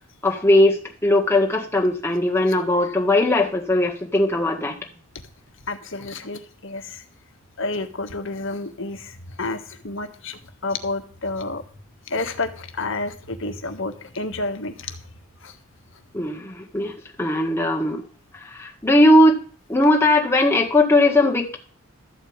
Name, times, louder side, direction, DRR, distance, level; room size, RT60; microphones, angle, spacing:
voice 1, 0.2-4.8 16.1-16.9 17.2-18.0 18.5-19.4 19.7-21.6, left 1 dB, 10° left, 1 dB, 1.7 m, -18 dB
voice 2, 5.7-7.0 7.6-11.6 12.1-15.0 15.4-15.5, left 3 dB, 60° left, 7 dB, 1.5 m, -30 dB
13.0 x 5.0 x 8.8 m, 0.42 s
head